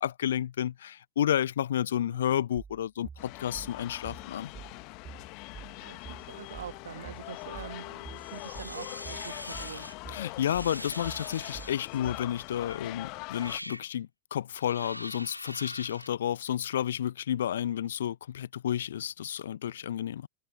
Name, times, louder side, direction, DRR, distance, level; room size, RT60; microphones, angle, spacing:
voice 1, 0.0-4.5 10.1-20.3, left 10 dB, 60° left, 0.9 m, -31 dB
sound 1, 2.6-12.3, right 6 dB, 20° right, 4.6 m, -47 dB
sound 2, 3.2-13.6, left 28 dB, 45° left, 1.7 m, -43 dB
voice 2, 5.8-9.9, right 8 dB, 65° right, 1.5 m, -45 dB
sound 3, 8.2-9.9 10.4-12.0 12.7-12.8 13.3-13.9 14.6-16.1, left 1 dB, 85° left, 2.8 m, -43 dB
figure-of-eight pair, 90°, 0 cm